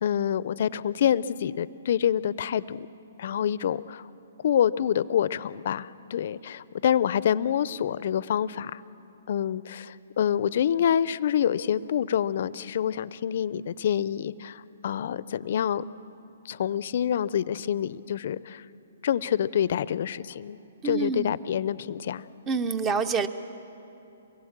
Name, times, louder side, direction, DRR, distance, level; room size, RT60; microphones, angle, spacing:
voice 1, 0.0-2.9 3.2-4.1 4.4-8.8 9.3-15.8 16.4-18.6 19.0-20.6 20.8-22.2, left 9 dB, 55° left, 18 dB, 0.6 m, -27 dB
voice 2, 20.8-21.3 22.5-23.3, right 5 dB, 20° right, 12 dB, 0.9 m, -27 dB
24.5 x 21.0 x 7.4 m, 2.9 s
hypercardioid pair, 140°, 0 cm